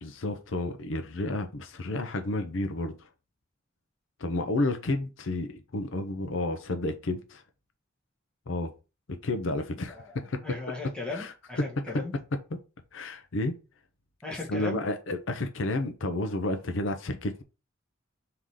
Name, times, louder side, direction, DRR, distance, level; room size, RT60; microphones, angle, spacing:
voice 1, 0.0-2.9 4.2-7.4 8.5-8.7 9.1-10.6 11.1-11.3 12.9-13.5 14.5-17.4, left 2 dB, 75° left, 0.6 m, -31 dB
voice 2, 9.9-12.1 14.2-14.8, left 3 dB, 5° left, 1.4 m, -37 dB
3.8 x 2.9 x 4.8 m
head